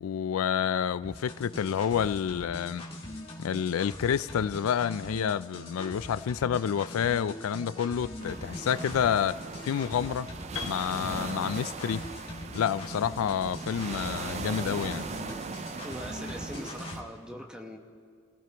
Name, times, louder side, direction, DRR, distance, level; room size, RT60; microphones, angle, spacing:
voice 1, 0.0-2.8 3.4-10.3 10.6-12.1 12.5-15.1, left 8 dB, 90° left, 0.3 m, -29 dB
sound 1, 1.0-17.0, left 1 dB, 25° left, 2.1 m, -42 dB
sound 2, 8.2-17.0, right 4 dB, 30° right, 0.4 m, -39 dB
Piano, 10.6-14.5, left 7 dB, 70° left, 1.0 m, -45 dB
voice 2, 15.8-17.8, equal, 5° right, 1.0 m, -41 dB
27.0 x 15.5 x 3.0 m
head